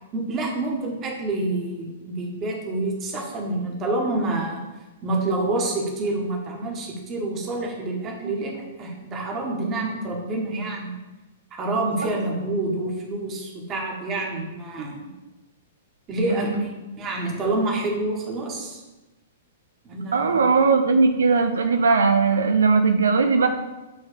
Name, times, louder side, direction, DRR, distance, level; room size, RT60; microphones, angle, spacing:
voice 1, 0.1-4.6 5.0-10.9 11.5-15.0 16.1-16.7 17.0-18.8 19.9-20.4, right 2 dB, 25° right, -1 dB, 1.7 m, -27 dB
voice 2, 20.1-23.5, right 4 dB, 65° right, 6 dB, 0.6 m, -19 dB
9.0 x 4.0 x 5.1 m, 1.1 s
figure-of-eight pair, 105°, 0 cm